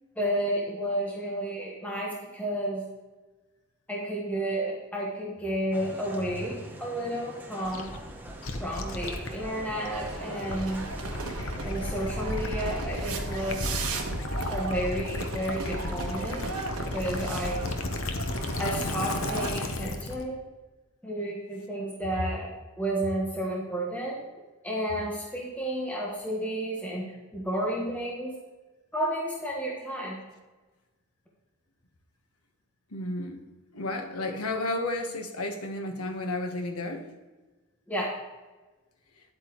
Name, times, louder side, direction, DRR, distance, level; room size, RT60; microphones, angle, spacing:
voice 1, 0.2-2.8 3.9-7.9 8.6-10.9 11.6-13.8 14.5-16.5 16.8-17.6 18.6-20.4 21.0-22.5 22.8-24.2 24.6-27.1 27.3-28.3 28.9-30.2 37.9-38.1, right 1 dB, 5° left, -3 dB, 1.3 m, -31 dB
sound 1, 5.7-14.2, right 1 dB, 10° right, 0.8 m, -44 dB
Gurgling / Liquid, 7.6-20.2, left 2 dB, 65° left, 0.9 m, -34 dB
sound 2, 9.9-19.5, right 3 dB, 75° right, 1.4 m, -36 dB
voice 2, 32.9-33.4 33.7-37.1, left 2 dB, 85° left, 5 dB, 1.2 m, -32 dB
10.0 x 8.2 x 3.1 m, 1.2 s
head